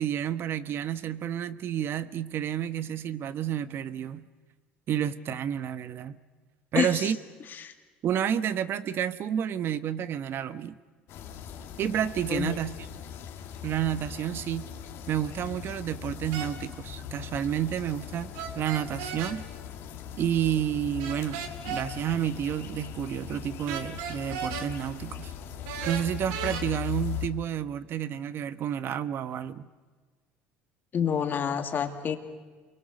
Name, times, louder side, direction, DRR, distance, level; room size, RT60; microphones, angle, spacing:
voice 1, 0.0-4.3 4.9-6.2 6.7-7.2 8.0-10.8 11.8-12.7 13.6-14.6 15.1-19.5 20.2-25.3 25.8-29.7, right 10 dB, 50° right, 13 dB, 1.1 m, -30 dB
sound 1, 11.1-27.3, left 10 dB, 60° left, 2.5 m, -40 dB
sound 2, 16.3-16.5 18.3-19.4 21.0-21.9 23.7-24.7 25.7-26.6, right 8 dB, 80° right, 2.2 m, -35 dB
voice 2, 30.9-32.2, left 8 dB, 45° left, 6 dB, 2.4 m, -28 dB
28.5 x 23.5 x 6.6 m, 1.4 s
supercardioid pair, 80°, 5 cm